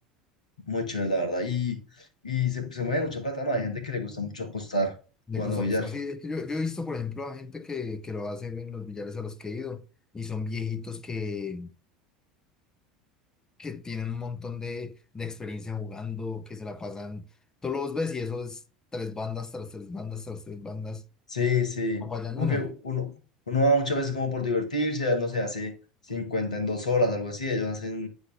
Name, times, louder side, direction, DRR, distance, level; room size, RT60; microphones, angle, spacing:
voice 1, 0.7-4.9 5.3-5.9 21.3-22.1 22.4-23.1 23.5-25.7 26.1-28.1, left 2 dB, 80° left, 1.6 m, -28 dB
voice 2, 5.3-9.8 10.1-11.7 13.6-17.3 17.6-18.6 18.9-21.0 22.0-22.7, left 4 dB, 15° left, 0.8 m, -34 dB
9.6 x 4.4 x 3.5 m
figure-of-eight pair, 75°, 4 cm